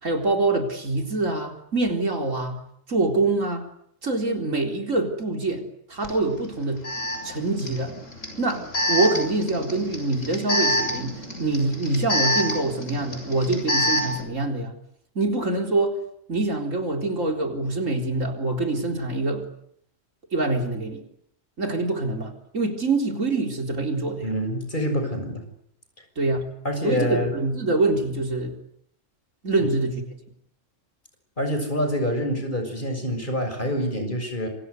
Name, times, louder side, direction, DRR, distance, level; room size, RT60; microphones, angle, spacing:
voice 1, 0.0-2.6 2.9-3.7 4.0-6.8 7.2-7.9 8.4-14.7 15.1-16.0 16.3-19.5 20.3-21.0 21.6-24.3 26.2-26.5 26.8-28.6 29.4-30.0, right 2 dB, 75° right, 4 dB, 4.4 m, -25 dB
Alarm, 6.0-6.1 6.8-14.2, left 1 dB, 75° left, 8.0 m, -27 dB
voice 2, 24.2-25.4 26.6-27.3 31.4-34.5, equal, 40° left, 6 dB, 6.8 m, -26 dB
27.5 x 25.5 x 8.2 m, 0.70 s
omnidirectional pair, 1.3 m